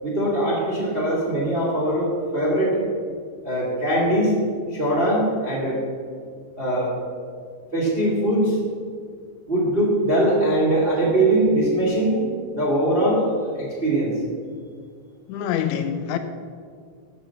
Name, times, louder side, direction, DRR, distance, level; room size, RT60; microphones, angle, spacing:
voice 1, 0.0-2.8 3.4-4.4 4.7-5.8 6.6-6.9 7.7-8.6 9.5-12.2 12.6-13.2 13.5-14.1, right 1 dB, 65° right, -5 dB, 0.5 m, -21 dB
voice 2, 15.3-16.2, left 9 dB, 80° left, 7 dB, 2.8 m, -25 dB
13.5 x 6.2 x 7.3 m, 2.1 s
omnidirectional pair, 5.9 m